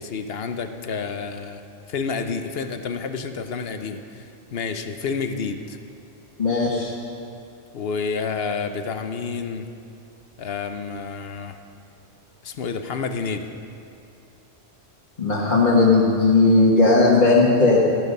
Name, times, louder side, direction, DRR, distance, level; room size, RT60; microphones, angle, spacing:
voice 1, 0.0-1.6 1.9-5.8 7.7-9.7 10.4-11.6 12.4-13.5, left 5 dB, 55° left, 7 dB, 0.9 m, -29 dB
voice 2, 6.4-6.9 15.2-17.8, left 3 dB, 40° left, -6 dB, 1.6 m, -17 dB
13.0 x 11.5 x 5.4 m, 2.6 s
omnidirectional pair, 1.3 m